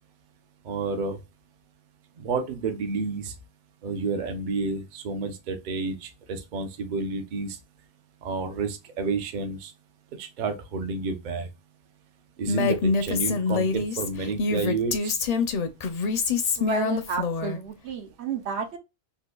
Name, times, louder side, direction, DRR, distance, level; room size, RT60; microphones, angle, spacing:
voice 1, 0.6-1.2 2.2-3.3 3.8-7.6 8.2-9.7 10.2-11.5 12.4-15.2, right 4 dB, 50° right, 0.7 m, -30 dB
Female speech woman speaking, 12.5-17.6, left 4 dB, 50° left, 0.5 m, -25 dB
voice 2, 16.6-18.8, right 5 dB, 85° right, 1.0 m, -31 dB
3.8 x 2.5 x 2.2 m
omnidirectional pair, 1.1 m